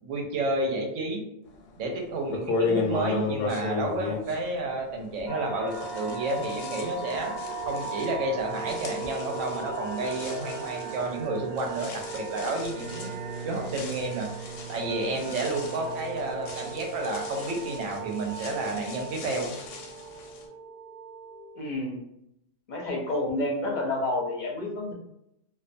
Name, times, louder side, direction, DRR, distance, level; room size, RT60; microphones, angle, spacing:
voice 1, 0.0-1.2 1.8-7.4 7.6-13.1 13.4-19.6, right 2 dB, 85° right, 1 dB, 1.0 m, -31 dB
sound 1, 1.7-1.8 2.3-5.4 5.7-20.4, left 4 dB, 85° left, 0.9 m, -36 dB
sound 2, 5.3-21.7, right 3 dB, 65° right, 0.8 m, -38 dB
Bowed string instrument, 12.4-17.8, right 4 dB, 10° right, 0.5 m, -42 dB
voice 2, 21.6-22.0 22.7-24.9, left 2 dB, 50° left, -1 dB, 0.6 m, -29 dB
2.4 x 2.3 x 2.5 m, 0.80 s
omnidirectional pair, 1.3 m